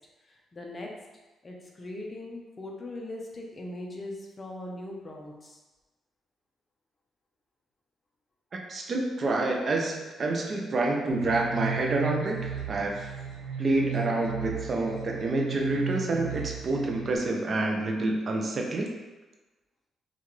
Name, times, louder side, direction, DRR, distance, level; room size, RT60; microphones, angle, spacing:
voice 1, 0.2-0.9 1.4-5.6, left 1 dB, 30° left, -1 dB, 0.8 m, -40 dB
voice 2, 8.7-13.1 13.6-18.9, right 2 dB, 45° right, 1 dB, 0.6 m, -28 dB
sound 1, 11.1-17.2, right 6 dB, 90° right, 0.6 m, -35 dB
5.5 x 2.5 x 3.2 m, 1.2 s
cardioid pair, 105°, 0 cm